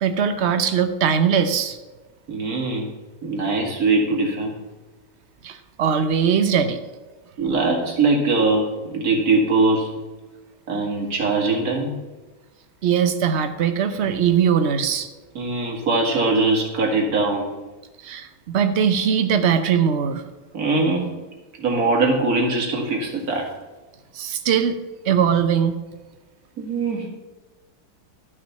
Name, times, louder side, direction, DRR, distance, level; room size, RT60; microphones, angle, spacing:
voice 1, 0.0-1.8 5.4-6.8 12.8-15.1 18.0-20.2 24.1-24.8 25.0-25.8, right 7 dB, 75° right, 9 dB, 0.6 m, -20 dB
voice 2, 2.3-2.9 3.2-4.5 7.4-9.9 10.7-12.0 15.3-17.5 20.5-21.2 21.6-23.5 26.6-27.1, right 3 dB, 50° right, 0 dB, 2.4 m, -21 dB
12.0 x 6.0 x 5.7 m, 1.2 s
omnidirectional pair, 2.1 m